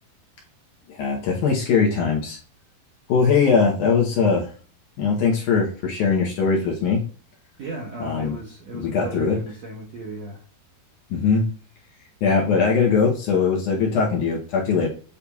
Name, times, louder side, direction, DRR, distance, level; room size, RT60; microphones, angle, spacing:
voice 1, 0.9-2.4 3.1-4.5 5.0-7.0 8.0-8.4 8.7-9.4 11.1-11.4 12.2-14.9, left 5 dB, 70° left, -1 dB, 2.0 m, -21 dB
voice 2, 7.6-10.4, right 2 dB, 70° right, -3 dB, 1.6 m, -36 dB
8.2 x 2.7 x 2.3 m, 0.40 s
omnidirectional pair, 4.3 m